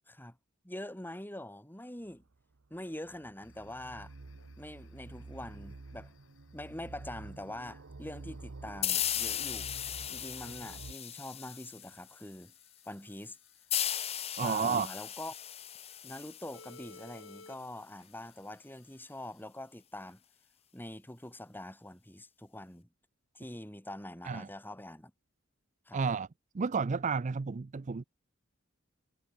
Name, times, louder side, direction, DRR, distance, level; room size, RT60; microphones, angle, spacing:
voice 1, 0.6-2.2 2.7-4.1 4.6-6.1 6.5-9.7 10.1-12.5 12.9-13.4 14.4-15.3 16.0-20.2 20.7-22.9 23.4-25.1 25.9-26.1, left 1 dB, 10° left, 3.5 m, -44 dB
sound 1, 2.1-10.9, right 3 dB, 90° right, 0.9 m, -49 dB
sound 2, 3.4-19.4, left 3 dB, 85° left, 5.6 m, -61 dB
sound 3, 8.8-12.2 13.7-17.2, left 10 dB, 30° left, 0.8 m, -36 dB
voice 2, 14.4-14.9 24.2-24.5 25.9-26.3 26.5-28.0, right 5 dB, 35° right, 0.4 m, -31 dB
head